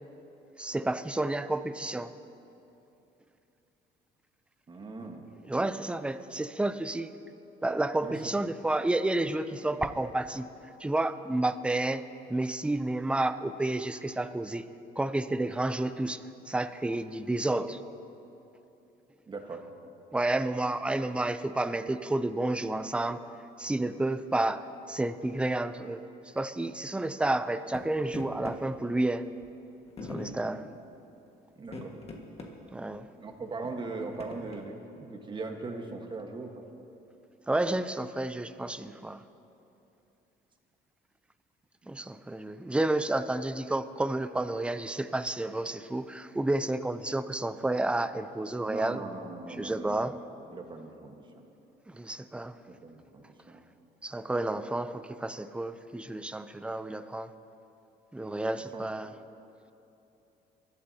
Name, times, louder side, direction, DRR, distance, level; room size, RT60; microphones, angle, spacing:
voice 1, 0.6-2.1 5.5-7.1 7.6-10.5 10.8-12.0 12.3-14.7 15.0-16.2 16.5-17.8 20.1-23.3 23.6-26.1 26.4-29.3 30.1-30.7 32.7-33.1 37.5-39.2 41.9-49.0 49.5-50.2 51.9-52.6 54.0-57.3 58.1-59.1, right 2 dB, 5° right, 12 dB, 0.5 m, -30 dB
voice 2, 4.7-5.2 8.0-8.3 19.3-19.7 31.6-32.0 33.2-36.6 48.7-50.2 50.5-51.4 52.7-53.6 58.7-58.8, right 3 dB, 30° right, 3 dB, 1.4 m, -40 dB
sound 1, 27.7-27.8 28.1-28.6 29.4-29.5 30.0-30.4 31.6-32.5 32.9-33.0 33.6-34.6, left 3 dB, 35° left, 1.6 m, -41 dB
23.0 x 12.5 x 2.8 m, 2.9 s
cardioid pair, 110°, 17 cm